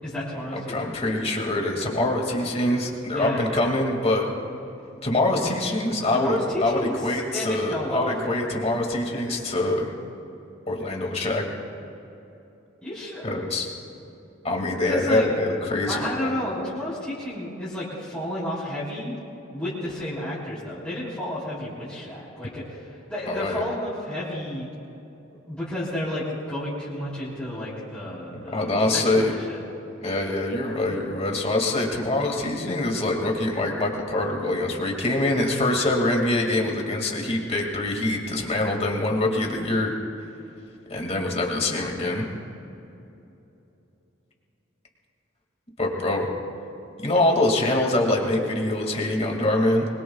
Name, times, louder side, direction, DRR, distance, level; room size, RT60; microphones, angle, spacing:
voice 1, 0.0-0.7 3.1-3.7 6.1-8.4 12.8-13.4 14.9-15.2 15.9-19.2 19.5-24.7 25.5-29.6, left 1 dB, 5° left, -11 dB, 3.9 m, -31 dB
voice 2, 0.5-4.3 5.0-9.9 10.7-11.4 13.2-13.7 14.4-16.4 23.3-23.6 28.3-29.3 30.0-39.9 40.9-42.3 45.8-46.3 47.0-49.9, left 2 dB, 30° left, 1 dB, 2.2 m, -24 dB
24.5 x 22.0 x 2.4 m, 2.9 s
head